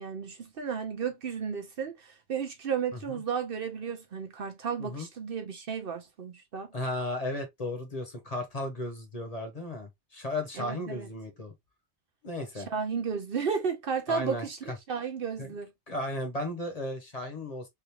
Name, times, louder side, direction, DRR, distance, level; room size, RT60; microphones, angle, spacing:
voice 1, 0.0-6.7 10.6-11.1 12.5-15.7, right 6 dB, 60° right, 0.8 m, -33 dB
voice 2, 6.7-11.5 12.2-12.7 14.1-14.8 15.4-15.5 15.9-17.7, left 1 dB, 35° left, 1.0 m, -35 dB
3.5 x 2.5 x 2.9 m
omnidirectional pair, 1.2 m